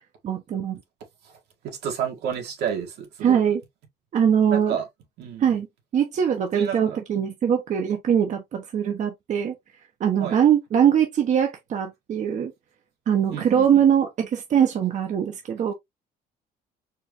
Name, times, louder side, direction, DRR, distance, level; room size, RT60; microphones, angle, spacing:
voice 1, 0.2-0.8 3.2-3.6 4.1-4.7 5.4-5.7 5.9-9.5 10.0-12.5 13.1-15.7, right 8 dB, 45° right, 0.8 m, -22 dB
voice 2, 1.6-3.4 4.5-4.9 5.2-5.6 6.5-7.3 10.2-10.4 13.3-13.8, right 8 dB, 75° right, 1.7 m, -31 dB
4.4 x 2.5 x 3.0 m
cardioid pair, 110°, 17 cm